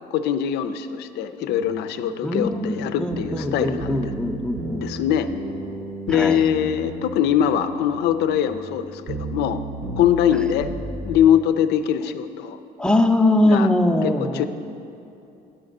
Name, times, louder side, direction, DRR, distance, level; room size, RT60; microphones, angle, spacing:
voice 1, 0.1-4.1 4.8-5.3 6.1-9.6 10.0-10.7 11.0-12.6 13.4-13.7 14.0-14.5, left 9 dB, 80° left, 11 dB, 0.5 m, -22 dB
sound 1, 1.5-11.3, right 1 dB, 60° right, 1.1 m, -34 dB
voice 2, 2.2-4.9 6.1-6.4 10.4-10.5 12.8-14.5, left 1 dB, 5° left, 4 dB, 0.5 m, -21 dB
10.0 x 4.9 x 6.5 m, 2.8 s
cardioid pair, 110°, 17 cm